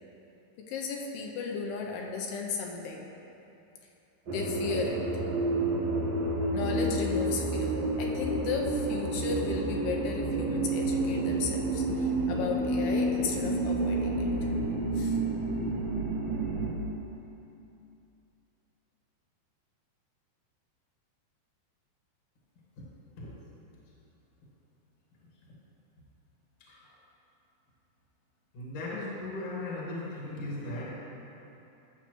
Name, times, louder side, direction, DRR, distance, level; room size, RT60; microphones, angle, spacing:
voice 1, 0.7-3.1 4.3-5.1 6.5-14.3 15.0-15.2, left 5 dB, 85° left, 0 dB, 2.6 m, -35 dB
sound 1, 4.3-16.7, right 2 dB, 85° right, 1.4 m, -29 dB
voice 2, 28.5-30.9, left 2 dB, 50° left, -6 dB, 1.6 m, -37 dB
11.0 x 7.1 x 3.0 m, 2.9 s
omnidirectional pair, 4.6 m